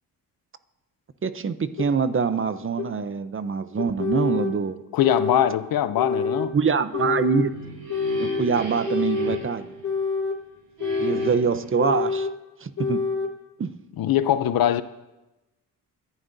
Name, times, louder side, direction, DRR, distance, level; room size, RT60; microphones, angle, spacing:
voice 1, 1.2-4.8 6.5-7.5 8.2-9.7 11.0-12.3 12.6-13.0 13.6-13.7, right 5 dB, 35° right, 0.7 m, -24 dB
sound 1, 1.8-1.9 2.8-2.9 3.8-4.5 5.0-5.5 6.0-6.5 6.9-7.5 7.9-8.5 8.9-9.4 9.8-10.4 10.8-11.4 11.8-12.3 12.8-13.3, left 4 dB, 55° left, 1.5 m, -26 dB
voice 2, 4.9-6.5 14.0-14.8, left 11 dB, 75° left, 0.7 m, -22 dB
sound 2, 7.3-10.3 10.8-11.8, right 5 dB, 65° right, 5.0 m, -36 dB
23.0 x 11.5 x 2.7 m
cardioid pair, 75°, 36 cm